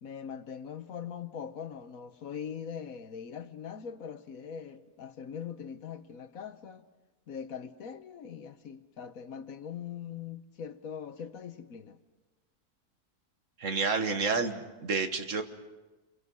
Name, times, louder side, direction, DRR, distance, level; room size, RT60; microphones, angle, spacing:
voice 1, 0.0-6.8 7.3-12.0, left 7 dB, 65° left, 1.4 m, -41 dB
voice 2, 13.6-15.4, right 4 dB, 55° right, 1.6 m, -29 dB
28.0 x 23.5 x 6.2 m
omnidirectional pair, 1.6 m